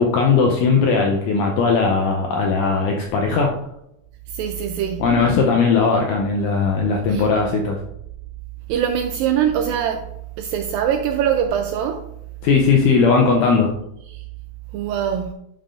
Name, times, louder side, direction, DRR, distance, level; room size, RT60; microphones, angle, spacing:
voice 1, 0.0-3.5 5.0-7.8 12.4-13.7, left 4 dB, 80° left, 1.8 m, -18 dB
voice 2, 4.3-5.1 7.1-7.3 8.7-10.1 10.4-12.1 14.1-14.2 14.7-15.3, right 9 dB, 85° right, 2.1 m, -23 dB
11.5 x 5.5 x 2.5 m
omnidirectional pair, 4.4 m